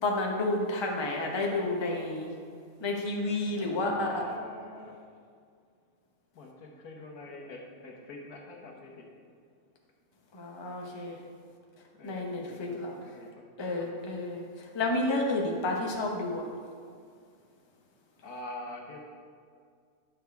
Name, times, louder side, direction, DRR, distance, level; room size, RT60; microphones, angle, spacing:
voice 1, 0.0-2.3 2.8-4.2 10.3-11.2 12.0-12.9 13.6-16.4, left 2 dB, 25° left, 0 dB, 0.8 m, -31 dB
voice 2, 3.5-5.0 6.3-9.1 12.0-13.5 13.8-14.0 18.2-19.0, left 2 dB, 85° left, 0 dB, 1.6 m, -46 dB
9.8 x 6.6 x 3.5 m, 2.2 s
omnidirectional pair, 1.5 m